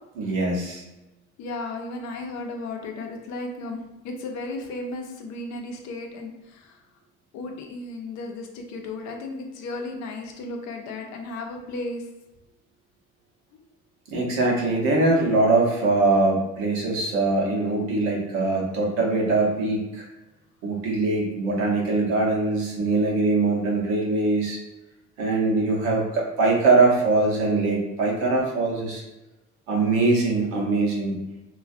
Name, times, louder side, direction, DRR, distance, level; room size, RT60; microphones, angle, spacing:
voice 1, 0.1-0.8 14.1-20.1 20.6-24.6 25.2-29.0 29.7-31.1, right 3 dB, 90° right, -2 dB, 0.7 m, -22 dB
voice 2, 1.4-6.8 7.3-12.0, left 2 dB, 75° left, 3 dB, 0.5 m, -34 dB
2.4 x 2.2 x 2.4 m, 1.0 s
supercardioid pair, 70°, 29 cm